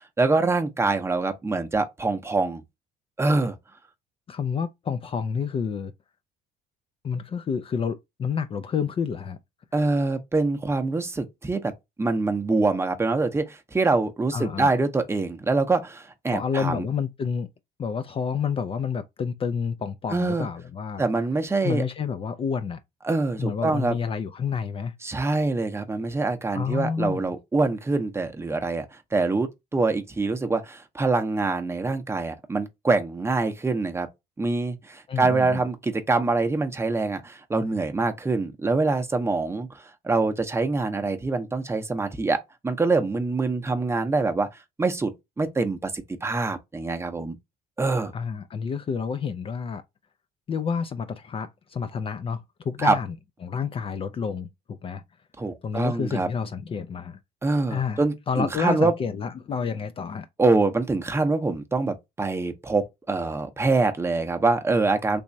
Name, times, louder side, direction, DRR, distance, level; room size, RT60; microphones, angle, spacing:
voice 1, 0.2-2.6 3.2-3.6 9.7-11.7 12.0-16.8 20.1-20.5 21.0-21.8 23.0-24.0 25.0-34.1 34.4-44.5 44.8-45.1 45.4-47.3 47.8-48.1 52.8-53.0 55.4-56.3 57.4-58.9 60.4-65.2, right 3 dB, 15° right, 0.7 m, -25 dB
voice 2, 4.3-5.9 7.0-9.4 14.3-14.7 16.3-17.5 17.8-21.0 21.6-22.8 23.4-24.9 26.5-27.3 35.1-35.6 48.1-49.8 50.5-53.2 53.4-55.0 55.6-57.2 57.7-58.0 58.3-60.3, left 6 dB, 35° left, 0.4 m, -29 dB
3.4 x 2.9 x 2.6 m
cardioid pair, 110°, 17 cm